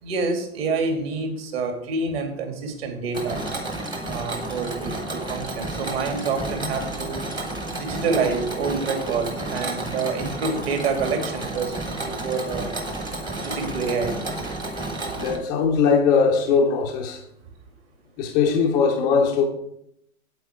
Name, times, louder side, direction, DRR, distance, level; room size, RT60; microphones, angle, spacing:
voice 1, 0.0-3.4 4.0-7.2 7.8-12.8 13.4-14.2, right 4 dB, 40° right, 2.3 m, -27 dB
Mechanisms, 3.1-15.4, right 2 dB, 10° right, 1.0 m, -31 dB
voice 2, 15.2-17.2 18.2-19.4, left 5 dB, 10° left, 0.4 m, -20 dB
8.1 x 7.9 x 4.9 m
hypercardioid pair, 145°, 44 cm